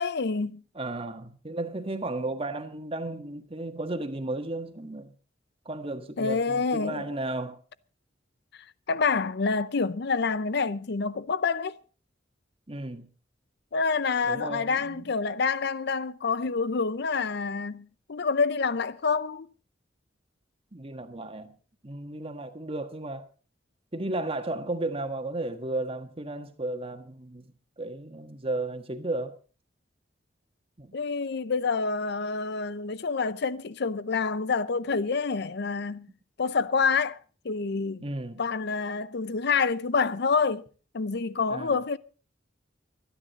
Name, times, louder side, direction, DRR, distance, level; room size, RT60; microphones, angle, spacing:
voice 1, 0.0-0.6 6.2-7.1 8.9-11.8 13.7-19.5 30.9-36.1 36.4-37.2 37.4-38.0 38.4-40.7 40.9-42.0, left 4 dB, 65° left, 0.7 m, -27 dB
voice 2, 0.7-5.1 5.6-7.6 12.7-13.1 14.2-15.1 20.7-21.6 21.8-23.3 23.9-27.5 27.8-29.4 30.8-31.0 38.0-38.4 41.5-41.8, right 2 dB, 30° right, 1.5 m, -34 dB
25.5 x 10.0 x 4.1 m
head